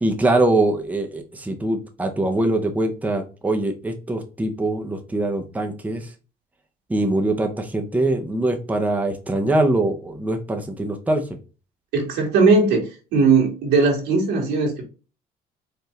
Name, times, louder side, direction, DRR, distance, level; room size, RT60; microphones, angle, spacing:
voice 1, 0.0-6.1 6.9-11.2, right 2 dB, 10° right, 3 dB, 0.7 m, -23 dB
voice 2, 11.9-14.8, right 4 dB, 85° right, -1 dB, 1.7 m, -19 dB
4.6 x 2.6 x 3.1 m, 0.34 s
cardioid pair, 110°, 17 cm